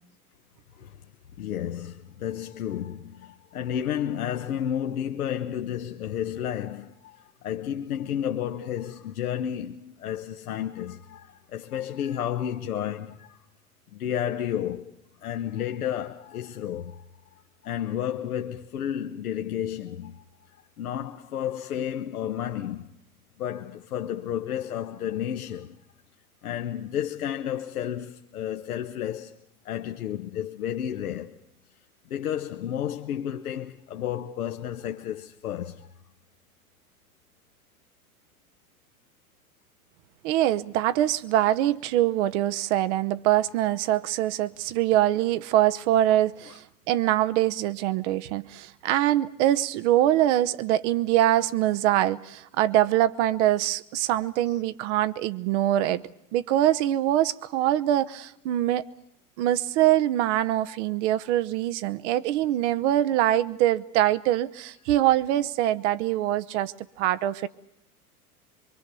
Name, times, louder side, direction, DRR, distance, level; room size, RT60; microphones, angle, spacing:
voice 1, 1.4-13.4 13.9-14.9 15.2-17.1 17.6-22.9 23.4-25.8 26.4-29.4 29.6-31.4 32.1-35.9 46.5-46.6, left 10 dB, 75° left, 1.1 m, -32 dB
voice 2, 40.2-56.0 56.3-58.8 59.4-67.5, right 13 dB, 50° right, 1.0 m, -24 dB
24.0 x 23.5 x 6.9 m
hypercardioid pair, 95°, 44 cm